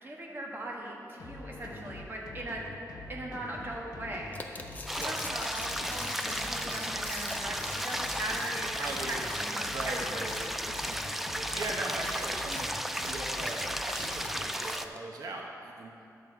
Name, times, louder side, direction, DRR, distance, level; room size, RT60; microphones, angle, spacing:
voice 1, 0.0-2.6 3.1-4.4 4.9-9.9 10.3-10.5, right 1 dB, 35° right, -3 dB, 1.5 m, -39 dB
sound 1, 1.2-14.4, left 3 dB, 85° left, 0.7 m, -45 dB
sound 2, 4.3-15.0, left 2 dB, 25° left, 0.7 m, -45 dB
sound 3, 4.9-14.9, equal, 5° right, 0.3 m, -34 dB
voice 2, 4.9-5.5 8.8-9.3 9.7-15.9, right 2 dB, 85° right, 0 dB, 0.9 m, -40 dB
11.0 x 7.5 x 4.6 m, 2.6 s
wide cardioid pair, 145°, 6 cm